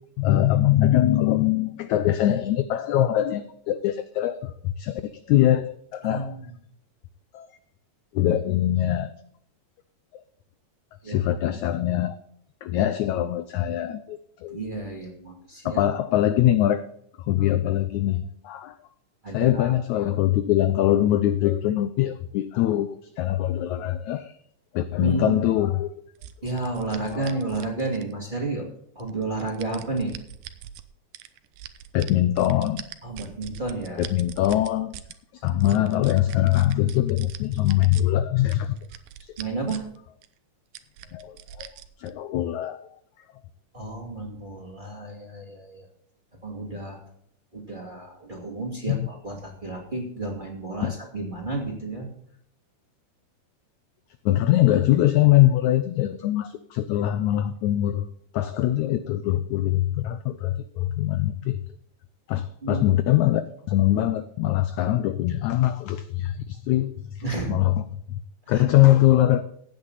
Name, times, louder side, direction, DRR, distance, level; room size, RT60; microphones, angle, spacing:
voice 1, 0.2-6.3 7.3-7.5 8.1-9.1 10.1-10.2 11.0-12.2 12.6-14.6 15.6-16.9 17.2-18.8 19.3-24.3 24.7-25.9 27.1-27.3 31.9-32.8 34.0-34.9 35.3-38.8 39.2-39.4 41.1-41.7 42.0-42.9 48.9-49.1 50.8-50.9 54.2-58.1 58.3-61.6 62.3-63.4 63.7-67.2 67.5-67.8 68.1-68.2 68.5-69.4, left 13 dB, 80° left, 11 dB, 1.7 m, -22 dB
voice 2, 6.0-6.5 11.0-11.2 14.5-15.8 19.2-19.7 25.0-25.4 26.4-28.7 28.9-30.1 33.0-34.1 39.4-39.8 43.7-45.9 46.4-47.0 47.5-52.1 62.3-62.8 67.2-67.6 68.5-68.6, right 2 dB, 15° right, -1 dB, 2.2 m, -31 dB
sound 1, 26.2-28.3 29.0-30.8 31.1-35.1 35.5-38.0 38.5-40.0 40.2-40.3 40.7-42.1, right 11 dB, 80° right, 2.4 m, -42 dB
16.0 x 9.0 x 4.0 m, 0.70 s
omnidirectional pair, 4.0 m